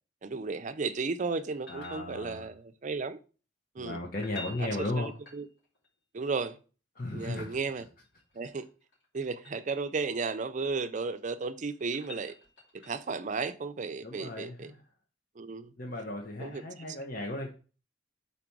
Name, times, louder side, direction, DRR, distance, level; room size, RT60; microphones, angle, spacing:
voice 1, 0.2-3.2 3.8-4.0 4.6-4.7 5.0-5.5 6.1-6.6 7.1-7.8 8.3-8.7 9.1-12.3 12.9-14.7 15.4-15.7 16.4-16.6, right 4 dB, 40° right, 0.5 m, -34 dB
sound 1, 1.4-2.6 4.1-5.9 8.0-9.7 11.1-13.2 16.0-16.1, left 3 dB, 70° left, 3.0 m, -50 dB
voice 2, 1.7-2.5 3.8-5.1 7.0-7.6 14.0-14.8 15.8-17.5, left 2 dB, 50° left, 1.0 m, -35 dB
5.0 x 4.1 x 5.9 m
head